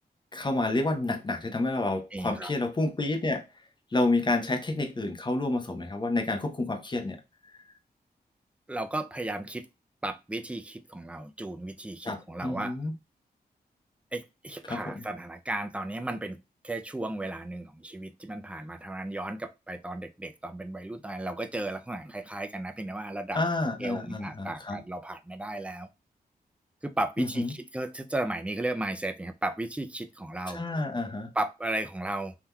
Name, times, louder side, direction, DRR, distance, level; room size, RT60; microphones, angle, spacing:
voice 1, 0.3-3.4 3.9-7.2 12.0-12.9 14.6-15.0 23.3-24.8 27.2-27.5 30.5-31.3, left 2 dB, 30° left, 0.7 m, -29 dB
voice 2, 2.1-2.5 8.7-9.7 10.0-12.7 14.1-23.4 23.8-25.9 26.8-30.6 31.4-32.3, right 2 dB, 10° right, 0.4 m, -35 dB
3.6 x 2.7 x 2.3 m
cardioid pair, 75°, 16 cm